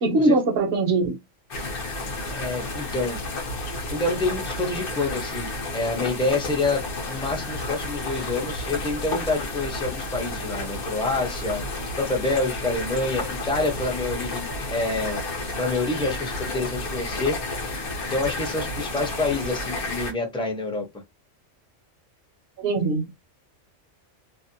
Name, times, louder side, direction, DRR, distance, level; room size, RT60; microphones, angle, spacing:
voice 1, 0.0-1.2 22.6-23.1, right 2 dB, 60° right, 0.9 m, -21 dB
sound 1, 1.5-20.1, left 2 dB, 50° left, 0.9 m, -31 dB
voice 2, 2.3-3.2 3.9-6.8 7.1-11.6 12.0-15.2 15.6-17.8 18.1-20.9, left 2 dB, 5° left, 0.6 m, -27 dB
2.7 x 2.0 x 2.6 m
omnidirectional pair, 1.3 m